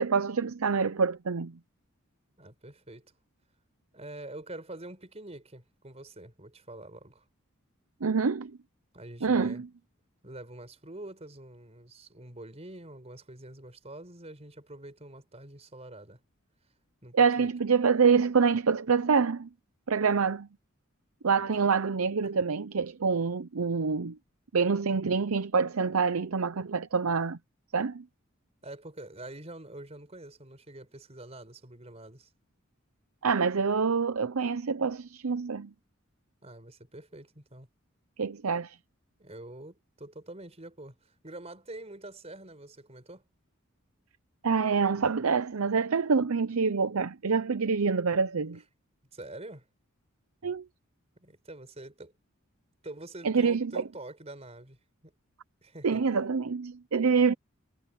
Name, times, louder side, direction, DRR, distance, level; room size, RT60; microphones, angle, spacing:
voice 1, 0.0-1.6 8.0-8.5 9.2-9.7 17.1-19.5 19.9-20.5 21.2-24.2 24.5-27.4 27.7-28.0 33.2-35.7 38.2-38.8 44.4-48.6 50.4-50.6 53.2-53.8 55.8-57.3, right 5 dB, 90° right, 0.7 m, -26 dB
voice 2, 2.4-3.1 3.9-7.2 8.9-9.6 10.2-16.2 17.0-17.5 28.6-32.3 36.4-37.7 39.2-40.9 41.2-43.2 48.5-48.6 49.1-49.7 51.2-52.1 52.8-54.8 55.0-55.1 55.6-56.0, right 1 dB, 30° right, 4.9 m, -45 dB
head